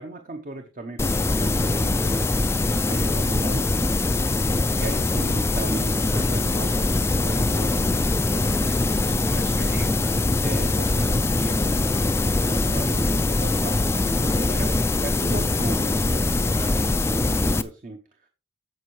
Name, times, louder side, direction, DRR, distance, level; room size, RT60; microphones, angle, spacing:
voice 1, 0.0-2.2 2.9-3.9 4.8-7.0 7.2-8.0 10.4-16.6 16.9-18.3, right 2 dB, 40° right, 5 dB, 0.8 m, -37 dB
sound 1, 1.0-17.6, left 2 dB, 15° left, 0.3 m, -22 dB
voice 2, 2.8-3.1 4.4-4.8 7.2-7.7 8.2-10.2 12.2-12.7 14.2-14.8 16.5-17.1, equal, 60° right, 0 dB, 5.8 m, -44 dB
15.5 x 5.3 x 3.1 m, 0.32 s
head